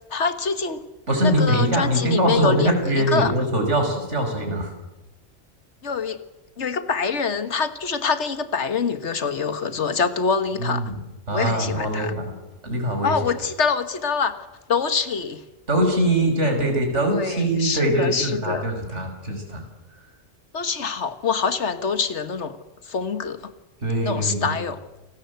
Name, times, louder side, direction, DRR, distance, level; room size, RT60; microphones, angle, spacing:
voice 1, 0.1-0.8 1.2-3.3 5.8-6.2 6.6-10.8 11.3-12.2 13.0-15.4 17.1-18.6 20.5-22.6 22.8-23.5 24.0-24.8, left 5 dB, 75° left, 11 dB, 1.8 m, -25 dB
voice 2, 1.1-4.7 10.6-11.0 11.3-12.4 12.6-13.2 15.7-19.6 19.9-20.1 23.8-24.6, right 1 dB, 85° right, 4 dB, 5.6 m, -23 dB
28.5 x 19.5 x 8.1 m, 1.0 s
omnidirectional pair, 1.2 m